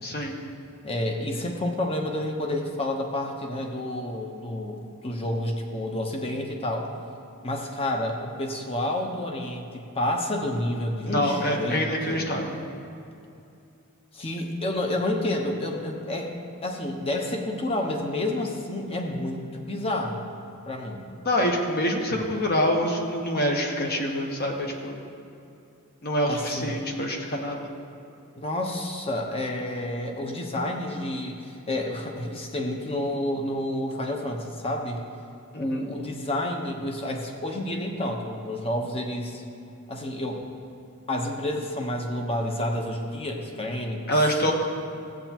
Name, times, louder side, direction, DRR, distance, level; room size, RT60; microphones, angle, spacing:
voice 1, 0.0-0.3 11.1-12.5 21.2-25.0 26.0-27.7 35.5-35.8 44.1-44.5, equal, 45° left, 1 dB, 1.2 m, -26 dB
voice 2, 0.8-6.9 7.4-12.4 14.1-16.3 16.6-20.3 20.7-21.1 26.3-26.9 28.3-35.0 35.6-39.4 39.9-40.5 41.1-44.5, left 1 dB, 25° left, 2 dB, 0.9 m, -29 dB
15.5 x 8.1 x 2.9 m, 2.7 s
head